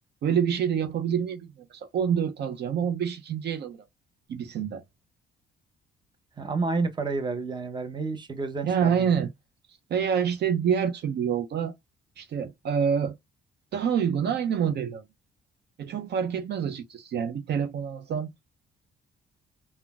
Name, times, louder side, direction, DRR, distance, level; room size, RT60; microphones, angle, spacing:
voice 1, 0.2-3.8 4.3-4.8 8.6-9.3 9.9-11.7 12.2-13.1 13.7-15.0 15.8-18.3, right 7 dB, 60° right, 0.5 m, -27 dB
voice 2, 6.4-9.2, right 3 dB, 25° right, 0.7 m, -30 dB
3.6 x 2.2 x 2.3 m
cardioid pair, 90°, 20 cm